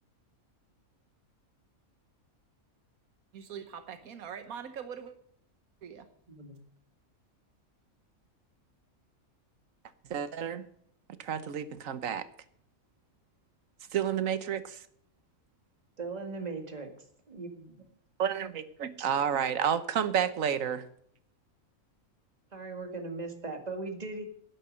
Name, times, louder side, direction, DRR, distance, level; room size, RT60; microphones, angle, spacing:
voice 1, 3.3-5.1 5.8-6.1, right 7 dB, 90° right, 9 dB, 1.4 m, -42 dB
voice 2, 6.3-6.6 16.0-17.0 17.3-17.9 22.5-24.3, right 3 dB, 30° right, 4 dB, 2.0 m, -39 dB
voice 3, 10.1-10.6 11.2-12.3 13.9-14.8 18.2-20.9, right 8 dB, 70° right, 12 dB, 1.4 m, -30 dB
11.5 x 10.0 x 6.4 m, 0.66 s
omnidirectional pair, 1.5 m